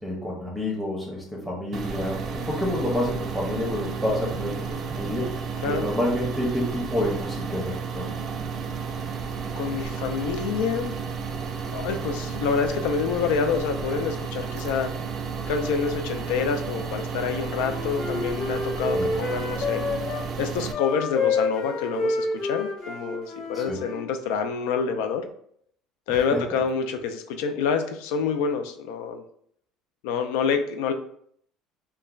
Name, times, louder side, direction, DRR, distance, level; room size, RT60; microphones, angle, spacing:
voice 1, 0.0-8.2 18.9-19.1 23.5-23.8 26.1-26.4, left 1 dB, 5° right, -3 dB, 0.6 m, -29 dB
sound 1, 1.7-20.7, right 5 dB, 45° right, 0.3 m, -32 dB
voice 2, 9.6-10.9 11.7-14.9 15.5-19.8 20.4-25.2 26.1-29.2 30.0-30.9, left 6 dB, 85° left, 7 dB, 0.3 m, -27 dB
Wind instrument woodwind instrument, 17.3-20.2 20.7-24.1, left 3 dB, 60° left, 0.7 m, -29 dB
3.1 x 2.1 x 2.3 m, 0.65 s
cardioid pair, 120°, 0 cm